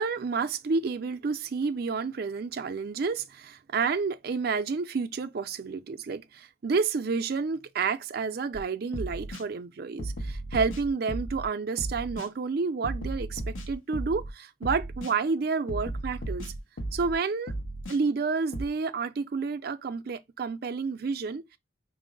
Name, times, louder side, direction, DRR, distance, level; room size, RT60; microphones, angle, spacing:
voice 1, 0.0-16.5 16.9-17.5 17.9-21.6, right 4 dB, 50° right, 0.4 m, -30 dB
sound 1, 8.5-8.6 8.9-9.4 10.0-11.4 11.8-12.3 12.8-14.3 14.6-15.1 15.7-17.1 17.5-18.0 18.5-18.7, right 1 dB, 85° left, 0.9 m, -35 dB
5.2 x 2.0 x 3.7 m
head